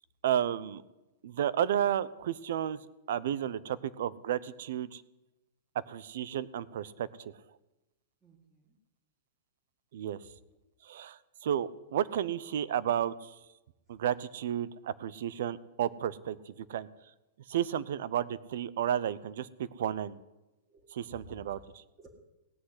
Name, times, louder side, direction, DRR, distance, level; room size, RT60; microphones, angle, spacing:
voice 1, 0.2-0.8 1.2-2.8 3.1-5.0 5.9-7.3 9.9-10.2 10.8-13.3 13.9-16.9 17.5-20.2 20.9-21.6, right 10 dB, 60° right, 18 dB, 0.7 m, -32 dB
voice 2, 8.2-8.8 10.5-10.6 20.7-22.1, equal, 15° right, -3 dB, 2.0 m, -55 dB
17.0 x 6.4 x 9.7 m, 1.0 s
supercardioid pair, 170°, 0 cm